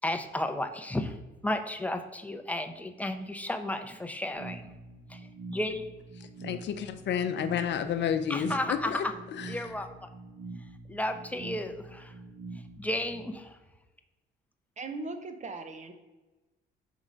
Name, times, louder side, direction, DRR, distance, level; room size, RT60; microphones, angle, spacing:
voice 1, 0.0-1.1 1.4-4.6 5.1-5.2 5.5-5.9 8.3-9.1 9.5-10.1 10.9-12.1 12.8-13.6, left 1 dB, 5° left, 7 dB, 0.6 m, -33 dB
sound 1, 4.3-13.3, right 3 dB, 65° right, 1.5 m, -45 dB
voice 2, 6.2-9.7, left 8 dB, 65° left, 8 dB, 0.6 m, -31 dB
voice 3, 14.8-15.9, right 3 dB, 35° right, 8 dB, 0.8 m, -38 dB
5.4 x 3.8 x 4.9 m, 1.1 s
cardioid pair, 90°, 20 cm